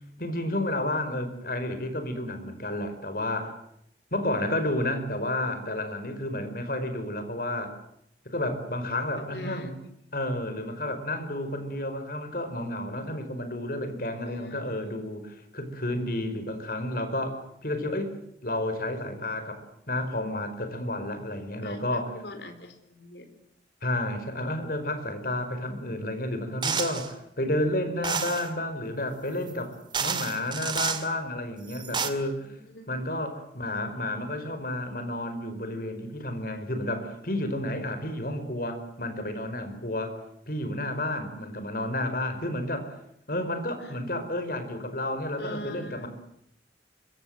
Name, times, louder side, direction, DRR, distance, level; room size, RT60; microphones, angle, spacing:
voice 1, 0.2-3.6 4.1-7.8 8.2-9.7 10.1-18.2 18.4-22.2 23.8-29.7 30.0-32.5 32.9-40.2 40.5-43.0 43.3-46.1, left 1 dB, 50° left, 9 dB, 4.8 m, -31 dB
voice 2, 9.2-9.8 14.2-14.9 21.6-23.2 32.2-33.0 43.8-43.9 45.4-46.1, left 1 dB, 70° left, 7 dB, 4.2 m, -43 dB
sound 1, 26.6-27.1 28.0-28.5 29.5-29.6 29.9-31.1 31.7-32.1, right 6 dB, 25° right, 2.2 m, -29 dB
25.0 x 23.5 x 7.9 m, 0.73 s
head